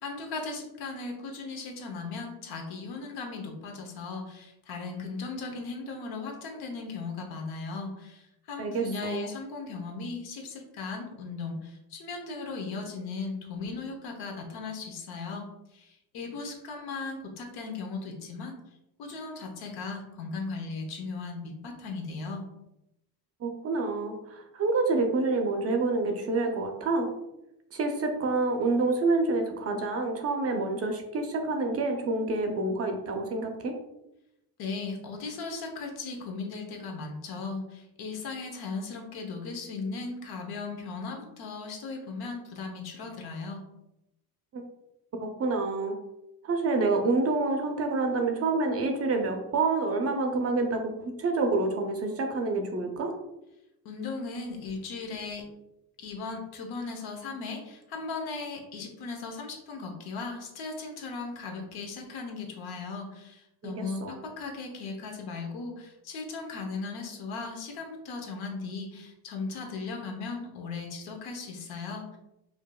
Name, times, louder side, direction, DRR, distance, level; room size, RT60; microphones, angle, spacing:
voice 1, 0.0-18.6 19.0-22.5 34.6-43.7 53.8-55.5 56.0-72.2, left 4 dB, 70° left, 2 dB, 0.9 m, -37 dB
voice 2, 8.6-9.3 23.4-27.1 27.7-33.8 44.5-44.6 45.2-46.0 46.4-53.1 63.6-64.1, right 3 dB, 40° right, 4 dB, 0.6 m, -28 dB
5.0 x 2.5 x 2.3 m, 0.88 s
cardioid pair, 140°, 39 cm